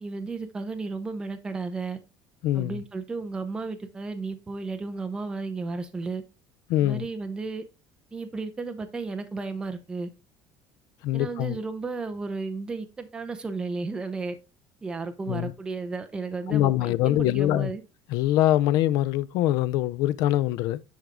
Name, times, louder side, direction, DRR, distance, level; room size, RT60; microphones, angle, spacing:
voice 1, 0.0-2.0 2.5-6.2 6.8-7.6 8.1-10.1 11.1-14.4 14.8-17.8, right 3 dB, 10° right, 0.6 m, -33 dB
voice 2, 2.4-2.8 6.7-7.1 11.0-11.6 15.3-15.5 16.5-17.7 18.1-20.8, left 14 dB, 60° left, 0.4 m, -23 dB
10.0 x 3.5 x 3.7 m
cardioid pair, 175°, 7 cm